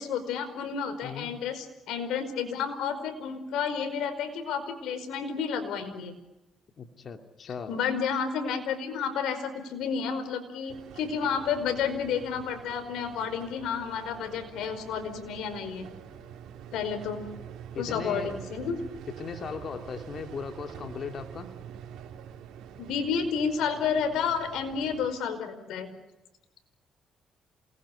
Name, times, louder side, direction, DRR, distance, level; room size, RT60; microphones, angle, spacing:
voice 1, 0.0-6.1 7.7-15.9 16.7-17.3 17.8-18.8 22.8-25.9, left 6 dB, 85° left, 9 dB, 5.0 m, -31 dB
voice 2, 6.8-7.8 17.7-18.3 19.2-21.5, left 5 dB, 50° left, 5 dB, 2.5 m, -38 dB
sound 1, 10.7-25.1, right 9 dB, 85° right, 3.4 m, -45 dB
28.5 x 21.0 x 8.5 m, 0.99 s
cardioid pair, 90°, 0 cm